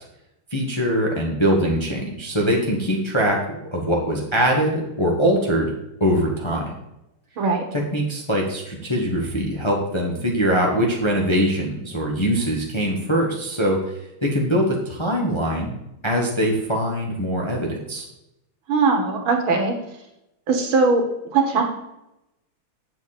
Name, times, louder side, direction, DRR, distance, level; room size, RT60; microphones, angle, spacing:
voice 1, 0.5-3.4 3.7-5.7 6.0-6.7 7.9-13.8 14.2-15.7 16.0-18.0, equal, 15° left, -1 dB, 1.0 m, -22 dB
voice 2, 18.7-19.7 20.5-21.0 21.3-21.7, right 4 dB, 70° right, 3 dB, 2.2 m, -20 dB
7.8 x 7.3 x 4.2 m, 0.88 s
omnidirectional pair, 2.4 m